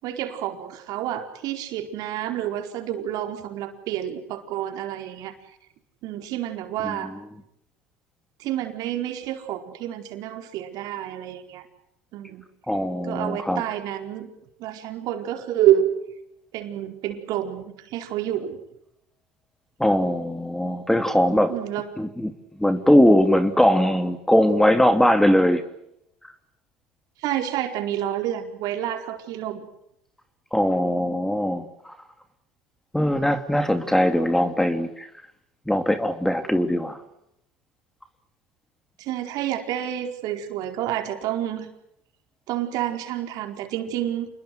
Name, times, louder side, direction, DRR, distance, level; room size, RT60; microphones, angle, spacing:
voice 1, 0.0-5.3 6.0-7.1 8.4-11.7 12.1-12.4 13.0-14.3 14.6-15.9 16.5-18.6 21.5-21.9 27.2-29.7 39.0-41.7 42.5-44.3, right 11 dB, 65° right, 6 dB, 4.6 m, -28 dB
voice 2, 12.7-13.6 19.8-21.5 22.0-22.3 22.6-25.6 30.5-31.9 32.9-35.1 35.7-37.0, equal, 5° left, 9 dB, 2.8 m, -20 dB
28.5 x 21.5 x 7.9 m, 0.77 s
supercardioid pair, 80°, 7 cm